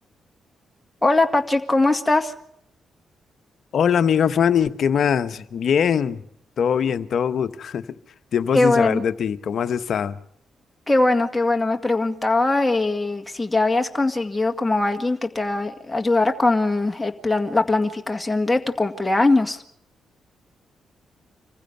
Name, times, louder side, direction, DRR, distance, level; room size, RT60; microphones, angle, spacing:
voice 1, 1.0-2.3 8.5-9.0 10.9-19.6, left 2 dB, 15° left, 4 dB, 2.0 m, -21 dB
voice 2, 3.7-6.2 6.6-7.8 8.3-10.2, left 7 dB, 65° left, 12 dB, 1.0 m, -21 dB
25.5 x 15.5 x 8.0 m, 0.71 s
hypercardioid pair, 45°, 0 cm